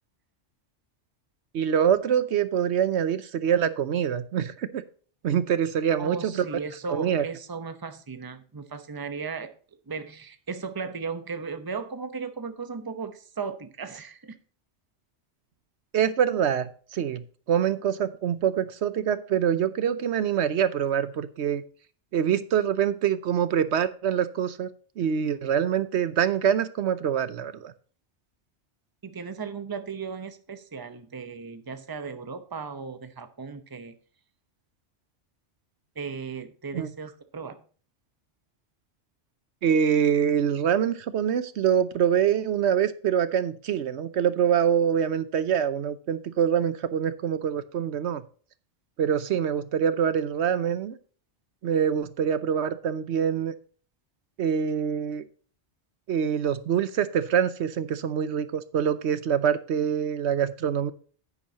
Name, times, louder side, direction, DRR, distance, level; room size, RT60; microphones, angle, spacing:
voice 1, 1.5-4.8 5.2-6.5 6.9-7.2 15.9-21.6 22.1-24.7 25.0-27.7 36.7-36.9 39.6-48.2 49.0-51.0 51.6-53.5 54.4-55.2 56.1-60.9, right 8 dB, 75° right, 14 dB, 1.0 m, -25 dB
voice 2, 6.0-9.5 9.9-14.4 29.0-34.0 36.0-37.6, right 5 dB, 20° right, 9 dB, 0.8 m, -36 dB
10.0 x 9.5 x 2.8 m, 0.41 s
omnidirectional pair, 1.2 m